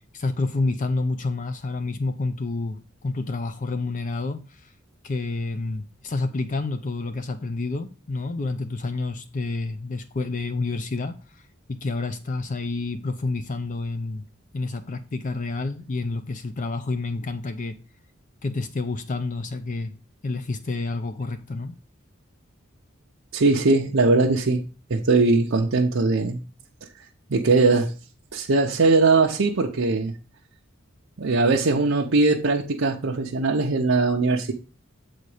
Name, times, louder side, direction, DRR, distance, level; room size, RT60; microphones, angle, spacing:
voice 1, 0.1-4.7 5.0-11.1 11.7-14.2 14.5-17.8 18.4-19.9 20.2-21.8, left 3 dB, 40° left, 0.5 m, -29 dB
voice 2, 23.3-24.6 24.9-26.4 27.3-27.9 28.3-30.1 31.2-34.5, right 3 dB, 65° right, 0.7 m, -20 dB
7.8 x 4.1 x 4.8 m
head